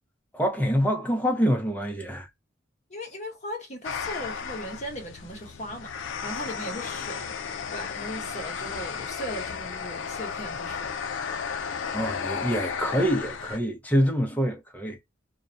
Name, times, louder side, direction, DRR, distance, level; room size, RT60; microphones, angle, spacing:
voice 1, 0.3-2.3 11.9-15.0, equal, 10° left, 0.6 m, -25 dB
voice 2, 2.9-7.3 7.7-10.9, equal, 35° left, 1.0 m, -38 dB
sound 1, 3.8-13.6, left 6 dB, 65° left, 0.4 m, -34 dB
2.4 x 2.1 x 2.5 m
head